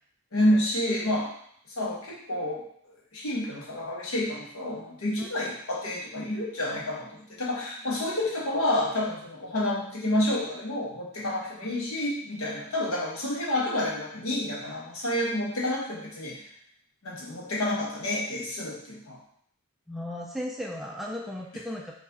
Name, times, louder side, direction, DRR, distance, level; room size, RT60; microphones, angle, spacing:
voice 1, 0.3-1.3 1.8-2.6 3.1-16.4 17.0-19.2, left 1 dB, 85° left, -4 dB, 1.3 m, -29 dB
voice 2, 19.9-22.0, left 1 dB, ahead, -1 dB, 0.4 m, -36 dB
5.8 x 3.1 x 2.9 m, 0.65 s
head